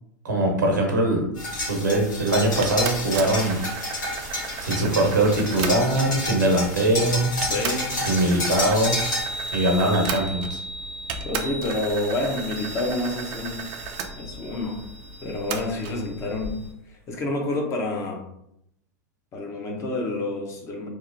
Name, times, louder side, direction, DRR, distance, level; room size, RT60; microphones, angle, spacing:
voice 1, 0.2-1.3 1.7-3.6 4.6-7.3 8.0-9.0 9.5-10.6, right 1 dB, 85° right, 1 dB, 0.8 m, -22 dB
sound 1, 1.4-9.2, left 1 dB, 85° left, 1.3 m, -30 dB
sound 2, 2.6-6.2 6.9-7.0 7.4-10.7 11.1-14.1 15.5-16.0, right 7 dB, 45° right, 0.4 m, -35 dB
voice 2, 7.5-8.0 11.2-13.7 14.1-14.8 15.2-16.6 16.9-18.2 19.3-20.9, left 2 dB, 30° left, 1 dB, 0.6 m, -29 dB
Chime, 8.6-16.7, equal, 55° left, 1.0 m, -37 dB
2.8 x 2.0 x 2.6 m, 0.76 s
hypercardioid pair, 100°, 10 cm